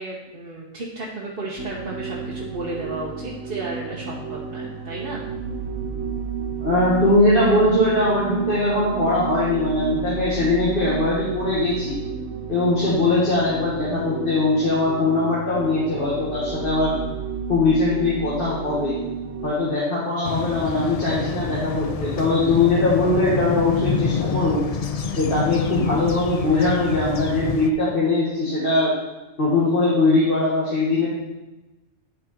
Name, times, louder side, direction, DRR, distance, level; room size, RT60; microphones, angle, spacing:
voice 1, 0.0-5.2, right 2 dB, 45° right, -4 dB, 1.3 m, -33 dB
sound 1, 1.6-19.5, right 6 dB, 85° right, 1.2 m, -31 dB
voice 2, 6.6-12.0 12.5-17.0 17.5-19.0 19.4-24.6 25.2-29.0 29.4-31.1, left 2 dB, 45° left, -7 dB, 2.1 m, -21 dB
sound 2, 20.2-27.7, left 5 dB, 75° left, 0.3 m, -27 dB
9.6 x 5.8 x 4.5 m, 1.1 s
omnidirectional pair, 1.3 m